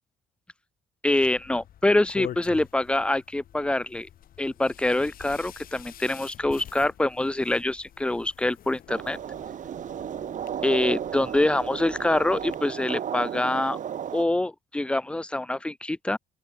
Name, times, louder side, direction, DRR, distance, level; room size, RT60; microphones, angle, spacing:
voice 1, 1.0-4.1 4.4-9.2 10.6-13.8 14.1-16.2, left 1 dB, 5° left, 0.4 m, -25 dB
sound 1, 1.2-12.6, left 11 dB, 60° left, 3.1 m, -46 dB
sound 2, 8.9-14.2, right 9 dB, 50° right, 2.3 m, -34 dB
open air
cardioid pair, 110°, 17 cm